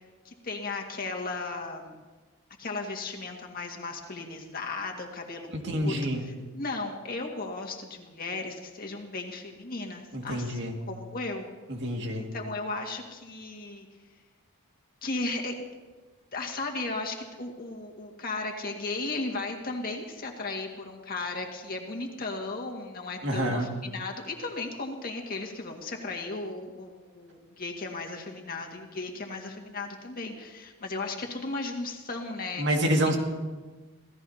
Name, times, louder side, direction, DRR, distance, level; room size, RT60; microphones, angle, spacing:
voice 1, 0.2-1.9 2.6-11.5 12.2-13.9 15.0-15.7 16.3-32.8 33.0-33.2, left 3 dB, 40° left, 1 dB, 2.0 m, -36 dB
voice 2, 5.5-6.2 10.1-10.8 11.7-12.3 23.2-23.7 32.6-33.2, equal, 55° right, 1 dB, 2.2 m, -27 dB
26.5 x 16.5 x 2.9 m, 1.3 s
head